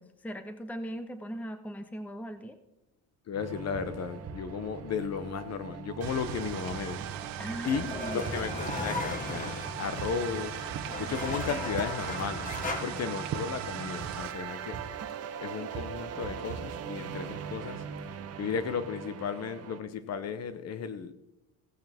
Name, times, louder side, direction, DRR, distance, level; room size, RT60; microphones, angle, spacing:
voice 1, 0.0-2.6 7.4-8.5 12.9-13.2, equal, 5° left, 10 dB, 0.8 m, -40 dB
voice 2, 3.3-7.0 7.6-7.9 8.1-10.7 11.0-12.5 12.8-14.8 15.4-17.8 18.4-21.1, left 6 dB, 40° left, 12 dB, 1.0 m, -34 dB
sound 1, 3.3-19.8, right 7 dB, 40° right, 1.1 m, -40 dB
sound 2, 6.0-14.3, right 11 dB, 60° right, 1.0 m, -40 dB
sound 3, 6.9-12.8, left 2 dB, 20° left, 1.5 m, -37 dB
16.0 x 8.7 x 3.6 m, 0.94 s
cardioid pair, 115°, 38 cm